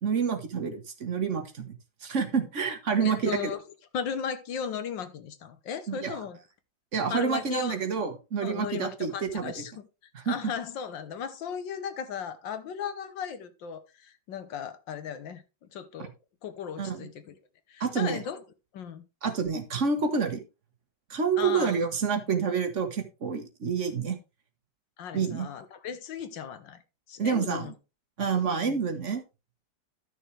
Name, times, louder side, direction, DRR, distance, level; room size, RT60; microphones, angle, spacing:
voice 1, 0.0-1.8 2.0-3.4 5.9-6.1 6.9-9.5 10.1-10.4 16.0-16.1 16.8-17.1 17.8-18.2 19.2-20.4 21.1-24.2 25.1-25.5 27.2-27.7 28.2-29.2, right 6 dB, 45° right, 1.4 m, -28 dB
voice 2, 3.0-3.6 3.9-6.4 7.1-7.8 8.4-9.7 10.2-15.4 15.7-16.1 16.4-17.4 17.7-18.4 18.7-19.0 21.4-21.8 25.0-26.8 27.1-27.7 28.3-28.8, left 7 dB, 75° left, 1.6 m, -36 dB
12.5 x 6.5 x 3.2 m
omnidirectional pair, 2.1 m